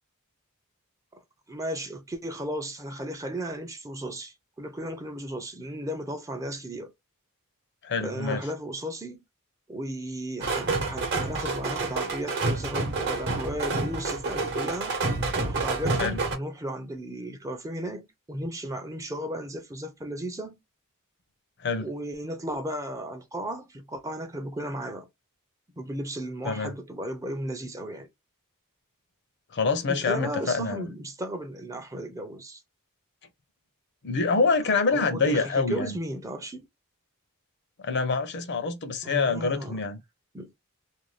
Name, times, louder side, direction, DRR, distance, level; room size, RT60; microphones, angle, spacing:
voice 1, 1.5-6.9 8.0-9.2 9.7-15.0 15.4-20.6 21.8-25.1 25.8-28.1 29.9-32.6 34.9-36.7 39.0-39.8 40.3-40.5, right 1 dB, 15° right, 0.4 m, -35 dB
voice 2, 7.8-8.5 16.0-16.2 21.6-21.9 26.4-26.8 29.5-30.9 34.0-36.0 37.8-40.0, left 4 dB, 50° left, 0.6 m, -26 dB
sound 1, 10.4-16.4, right 3 dB, 55° right, 0.9 m, -28 dB
2.5 x 2.2 x 3.1 m
head